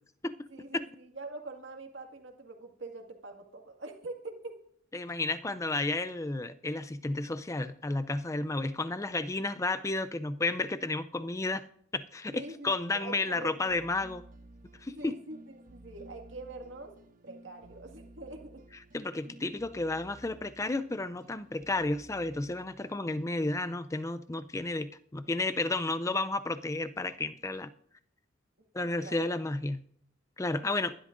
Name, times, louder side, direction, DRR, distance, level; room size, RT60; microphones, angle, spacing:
voice 1, 0.5-4.6 12.3-13.8 14.9-16.9 17.2-18.6 28.8-29.3 30.6-30.7, right 2 dB, 65° right, 3 dB, 1.9 m, -44 dB
voice 2, 4.9-11.6 11.9-14.2 14.8-15.1 18.9-27.7 28.7-29.8 30.4-31.0, left 2 dB, 15° left, 12 dB, 0.4 m, -32 dB
sound 1, 13.0-23.6, right 1 dB, 40° right, 0.9 m, -55 dB
21.5 x 12.0 x 2.6 m, 0.64 s
head